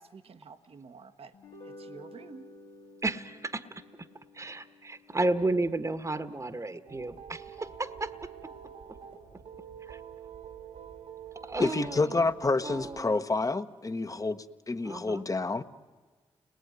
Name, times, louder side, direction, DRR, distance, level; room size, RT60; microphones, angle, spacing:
voice 1, 0.0-1.3 1.6-2.4, right 5 dB, 60° right, 8 dB, 1.2 m, -49 dB
sound 1, 1.3-7.8, left 2 dB, 75° left, 2.1 m, -53 dB
voice 2, 3.0-3.8 4.3-8.5 9.8-10.0 11.4-12.2 12.6-13.3 14.8-15.2, right 2 dB, 30° right, 11 dB, 1.4 m, -33 dB
sound 2, 6.9-13.0, right 8 dB, 80° right, 2.6 m, -46 dB
voice 3, 11.6-15.6, left 3 dB, 30° left, 11 dB, 1.3 m, -29 dB
30.0 x 20.0 x 9.6 m, 1.4 s
supercardioid pair, 45°, 11 cm